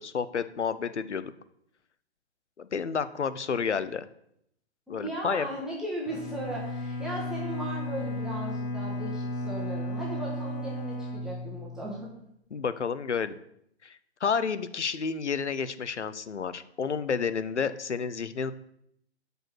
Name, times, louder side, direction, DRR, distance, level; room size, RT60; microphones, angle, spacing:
voice 1, 0.0-1.3 2.6-4.0 4.9-5.5 12.5-13.4 13.8-18.5, left 6 dB, 85° left, 14 dB, 0.7 m, -30 dB
voice 2, 4.9-12.1, right 1 dB, ahead, -6 dB, 1.6 m, -37 dB
Bowed string instrument, 6.1-12.1, left 1 dB, 30° left, 1.3 m, -34 dB
6.3 x 5.3 x 6.2 m, 0.74 s
figure-of-eight pair, 125°, 34 cm